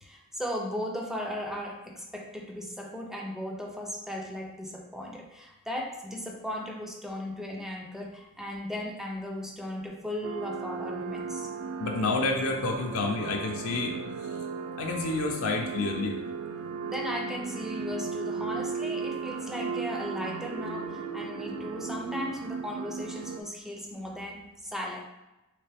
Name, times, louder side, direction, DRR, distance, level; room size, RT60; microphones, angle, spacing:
voice 1, 0.0-11.5 16.8-25.0, left 1 dB, ahead, 0 dB, 0.5 m, -37 dB
sound 1, 10.2-23.4, right 5 dB, 85° right, 0.3 m, -36 dB
voice 2, 11.8-14.0 14.8-16.2, left 3 dB, 70° left, 1 dB, 0.5 m, -29 dB
3.3 x 3.0 x 3.3 m, 0.99 s
head